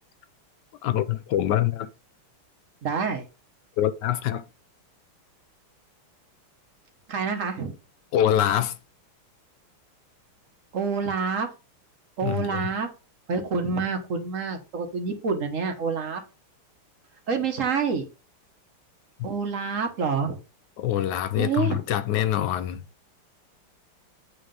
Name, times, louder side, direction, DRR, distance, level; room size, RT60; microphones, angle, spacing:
voice 1, 0.8-1.9 3.8-4.4 8.1-8.8 12.2-12.6 19.2-19.3 20.8-22.8, left 11 dB, 75° left, 1.0 m, -24 dB
voice 2, 2.8-3.2 7.1-7.7 10.7-11.5 12.2-12.9 13.3-16.2 17.3-18.0 19.2-20.4 21.4-21.8, right 5 dB, 45° right, 1.2 m, -27 dB
8.5 x 3.2 x 5.3 m
omnidirectional pair, 2.4 m